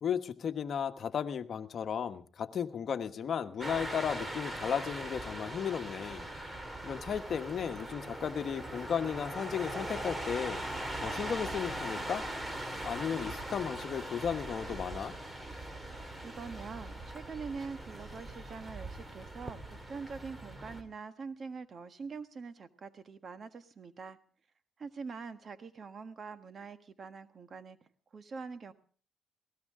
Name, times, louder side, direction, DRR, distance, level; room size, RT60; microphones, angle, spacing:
voice 1, 0.0-6.3 6.8-10.6 11.0-12.3 12.8-15.1, left 7 dB, 55° left, 8 dB, 1.3 m, -35 dB
sound 1, 3.6-20.8, right 1 dB, 20° right, 2.7 m, -40 dB
voice 2, 16.2-24.2 24.8-27.8 28.1-28.7, right 5 dB, 45° right, 10 dB, 1.4 m, -44 dB
20.0 x 18.0 x 3.7 m, 0.43 s
cardioid pair, 90°, 0 cm